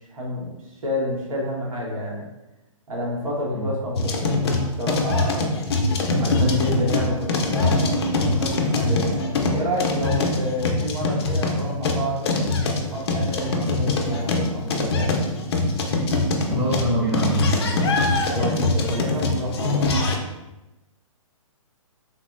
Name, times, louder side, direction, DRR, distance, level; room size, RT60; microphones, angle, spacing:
voice 1, 0.1-2.3 2.9-5.5 6.2-12.3 12.9-15.2 18.3-20.1, equal, 75° right, -3 dB, 1.1 m, -29 dB
sound 1, 4.0-20.2, left 2 dB, 50° left, 0.4 m, -23 dB
voice 2, 16.5-17.8, right 1 dB, 10° right, -9 dB, 0.6 m, -24 dB
3.4 x 2.0 x 2.5 m, 0.98 s
hypercardioid pair, 155°, 18 cm